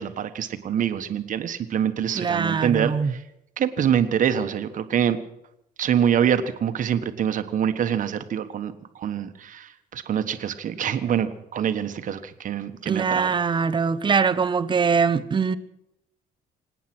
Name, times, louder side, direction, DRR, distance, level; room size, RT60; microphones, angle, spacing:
voice 1, 0.0-3.2 3.6-5.2 5.8-13.3, right 9 dB, 50° right, 1.4 m, -25 dB
voice 2, 2.1-3.1 12.9-15.6, right 5 dB, 30° right, 0.8 m, -22 dB
25.5 x 9.3 x 6.2 m
cardioid pair, 110°, 17 cm